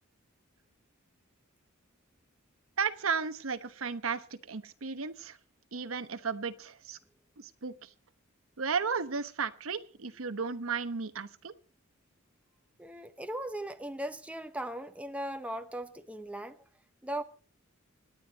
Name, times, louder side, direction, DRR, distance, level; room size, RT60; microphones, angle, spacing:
voice 1, 2.8-5.4 5.7-7.0 7.4-7.9 8.6-11.5, right 5 dB, 80° right, 11 dB, 1.0 m, -34 dB
voice 2, 12.8-16.6 17.0-17.2, right 1 dB, 5° right, 8 dB, 0.9 m, -38 dB
27.0 x 9.6 x 4.1 m, 0.39 s
head